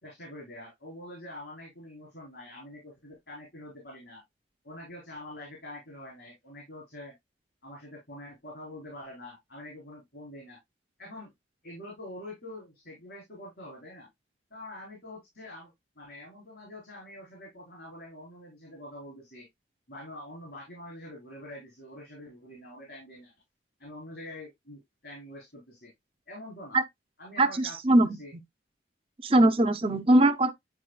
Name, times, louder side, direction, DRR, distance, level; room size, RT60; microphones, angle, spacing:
voice 1, 0.0-4.2 4.6-7.1 7.6-10.6 11.0-11.3 11.6-14.1 14.5-19.5 19.9-23.3 23.8-25.9 26.3-26.8 27.2-28.3, left 1 dB, 65° left, 3.8 m, -45 dB
voice 2, 27.4-28.1 29.2-30.5, right 1 dB, 30° right, 0.6 m, -21 dB
10.0 x 4.2 x 2.3 m
head